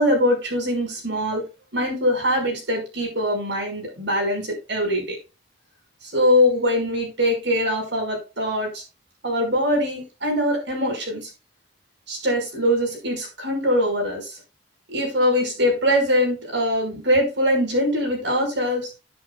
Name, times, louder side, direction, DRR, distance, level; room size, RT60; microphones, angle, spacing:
voice 1, 0.0-1.4 1.7-5.2 6.0-8.8 9.2-11.3 12.1-14.4 14.9-18.9, equal, 80° right, 1 dB, 6.1 m, -22 dB
10.5 x 9.3 x 2.5 m, 0.28 s
head